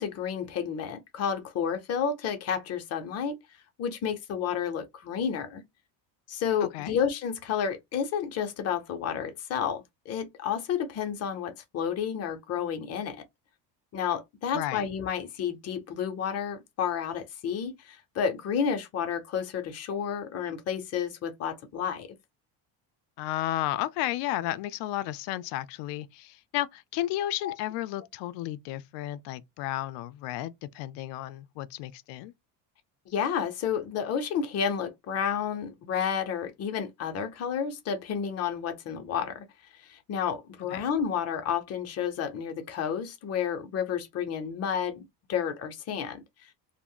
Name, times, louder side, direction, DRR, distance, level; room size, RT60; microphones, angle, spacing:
voice 1, 0.0-3.4 3.8-5.6 6.3-13.2 13.9-22.1 27.4-27.5 33.1-39.4 39.8-46.5, left 7 dB, 40° left, 0.6 m, -31 dB
voice 2, 6.6-7.0 14.5-14.9 23.2-32.3 40.7-40.8, left 14 dB, 85° left, 0.5 m, -33 dB
2.4 x 2.1 x 3.6 m
cardioid pair, 165°, 40 cm